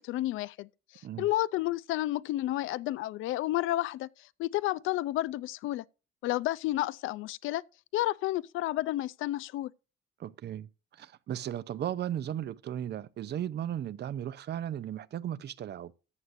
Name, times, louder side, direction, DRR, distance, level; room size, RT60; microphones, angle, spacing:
voice 1, 0.0-4.1 4.4-5.8 6.2-7.6 7.9-9.7, left 15 dB, 85° left, 0.4 m, -31 dB
voice 2, 10.2-15.9, right 10 dB, 60° right, 0.6 m, -36 dB
14.0 x 8.2 x 2.6 m
cardioid pair, 90°, 20 cm